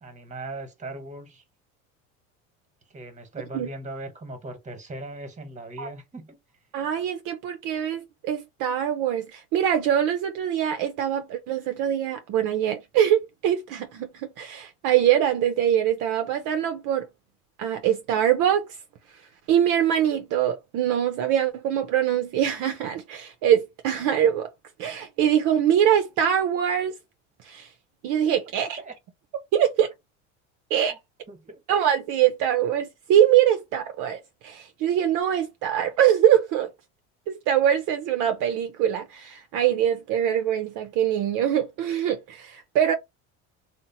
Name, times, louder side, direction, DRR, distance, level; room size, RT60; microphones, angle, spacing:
voice 1, 0.0-1.4 2.9-6.4 28.6-28.9 31.3-31.6, right 2 dB, 20° right, 1.1 m, -39 dB
voice 2, 6.7-17.1 17.6-18.7 19.5-24.5 24.8-26.9 27.4-27.7 28.0-28.8 29.5-29.9 30.7-31.0 31.7-36.7 37.3-42.9, right 10 dB, 55° right, 0.5 m, -23 dB
2.8 x 2.1 x 2.7 m
supercardioid pair, 90°, 38 cm